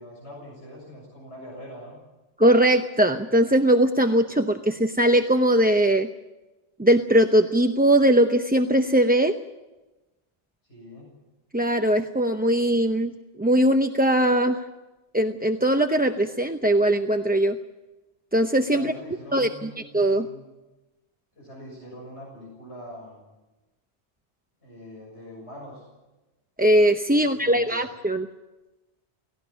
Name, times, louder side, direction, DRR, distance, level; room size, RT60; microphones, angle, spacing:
voice 1, 0.0-2.0 10.6-11.1 18.7-20.5 21.4-23.2 24.6-25.9 27.1-27.9, equal, 70° left, -3 dB, 7.1 m, -43 dB
voice 2, 2.4-6.1 6.8-9.3 11.5-13.1 13.4-14.6 15.1-17.6 18.3-18.9 19.3-20.3 26.6-28.3, right 1 dB, 10° right, 5 dB, 0.6 m, -20 dB
18.0 x 17.5 x 9.9 m, 1.1 s
omnidirectional pair, 1.2 m